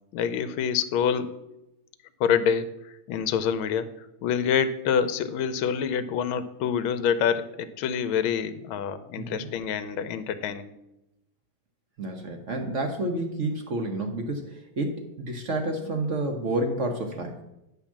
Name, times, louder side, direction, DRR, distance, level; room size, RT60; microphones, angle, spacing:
voice 1, 0.1-1.4 2.2-3.9 4.2-10.7, left 7 dB, 85° left, 12 dB, 1.4 m, -26 dB
voice 2, 9.2-9.5 12.0-17.4, right 2 dB, 55° right, 4 dB, 0.9 m, -30 dB
9.9 x 3.6 x 7.2 m, 0.89 s
omnidirectional pair, 2.2 m